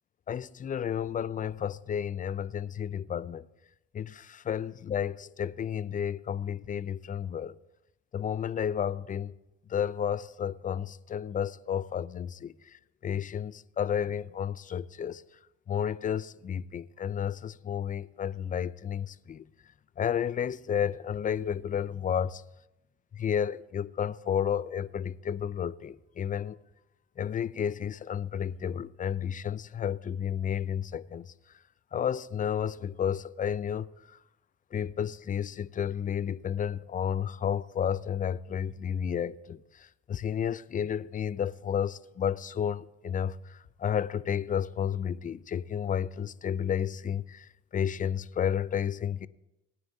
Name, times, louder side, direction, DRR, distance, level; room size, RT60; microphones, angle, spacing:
voice 1, 0.3-3.4 3.9-7.5 8.1-9.3 9.7-12.5 13.0-15.2 15.7-19.4 20.0-22.4 23.1-26.6 27.2-31.3 31.9-33.9 34.7-39.6 40.1-43.4 43.8-47.5 47.7-49.3, left 8 dB, 30° left, 0.4 m, -31 dB
19.5 x 9.5 x 2.7 m
supercardioid pair, 85°, 29 cm